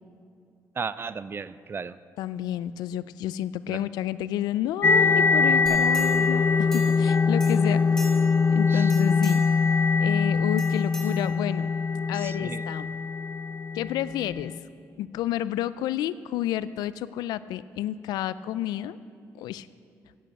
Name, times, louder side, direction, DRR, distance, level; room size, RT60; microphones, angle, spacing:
voice 1, 0.8-2.0 3.7-3.8 8.7-8.9 12.1-12.6, right 5 dB, 35° right, 16 dB, 0.4 m, -35 dB
voice 2, 2.2-8.1 8.5-9.4 10.0-11.7 12.1-12.9 13.7-14.5 15.0-19.0 19.3-19.7, left 12 dB, 85° left, 16 dB, 0.3 m, -30 dB
sound 1, 4.8-14.3, left 4 dB, 35° left, 0.5 m, -23 dB
sound 2, 5.7-7.1 7.4-8.5 8.8-9.6 10.6-11.7 12.2-12.3, equal, 5° left, 2.8 m, -43 dB
10.0 x 9.1 x 7.4 m, 2.4 s
cardioid pair, 80°, 7 cm